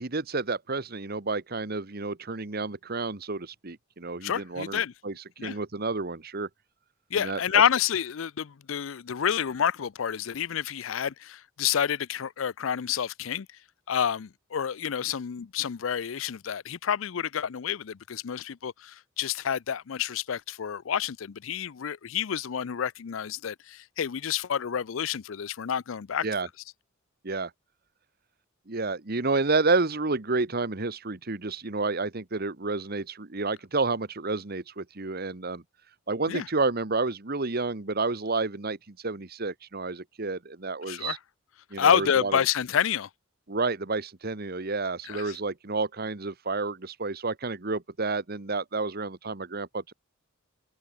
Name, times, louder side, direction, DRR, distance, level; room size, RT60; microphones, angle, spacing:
voice 1, 0.0-5.1 5.4-6.5 7.1-7.6 26.2-26.5 27.2-27.5 28.7-35.6 36.1-41.2 41.7-42.4 43.5-49.9, right 3 dB, 50° right, 1.4 m, -30 dB
voice 2, 4.2-4.9 5.4-5.6 7.1-13.5 13.9-26.3 36.3-36.5 40.9-41.2 41.8-43.1 45.1-45.4, left 8 dB, 75° left, 0.5 m, -28 dB
head